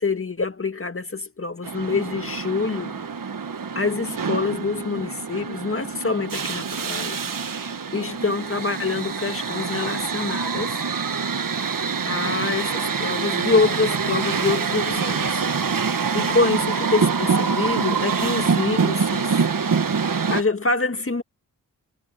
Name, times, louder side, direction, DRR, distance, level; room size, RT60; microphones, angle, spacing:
voice 1, 0.0-3.0 3.8-7.3 7.9-10.8 12.1-15.4 16.1-19.4 20.3-21.2, left 4 dB, 40° left, 2.1 m, -25 dB
sound 1, 1.6-20.4, right 5 dB, 65° right, 1.6 m, -25 dB
cardioid pair, 60°, 35 cm